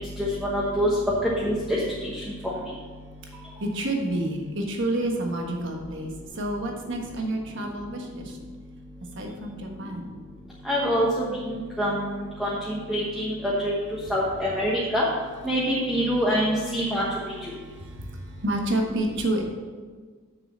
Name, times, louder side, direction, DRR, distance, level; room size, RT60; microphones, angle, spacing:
voice 1, 0.2-0.9 1.4-2.1 2.4-2.5 10.6-11.1 11.5-12.1 12.4-13.7 14.1-15.0 15.4-17.1, equal, ahead, -6 dB, 1.1 m, -25 dB
voice 2, 3.3-8.4 9.1-10.1 17.5-19.4, right 1 dB, 55° right, 1 dB, 1.4 m, -29 dB
6.9 x 6.6 x 7.3 m, 1.5 s
head